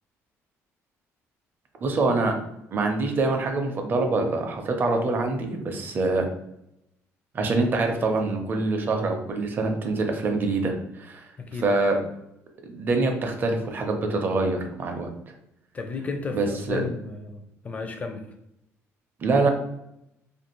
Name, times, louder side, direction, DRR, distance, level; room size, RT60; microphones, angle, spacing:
voice 1, 1.8-2.4 2.7-6.3 7.3-11.3 11.6-12.0 12.6-15.1 16.3-16.8 19.2-19.5, right 3 dB, 40° right, 4 dB, 0.5 m, -25 dB
voice 2, 11.4-11.7 15.7-18.3, left 4 dB, 25° left, 5 dB, 0.4 m, -33 dB
2.5 x 2.4 x 2.9 m, 0.82 s
cardioid pair, 130°, 6 cm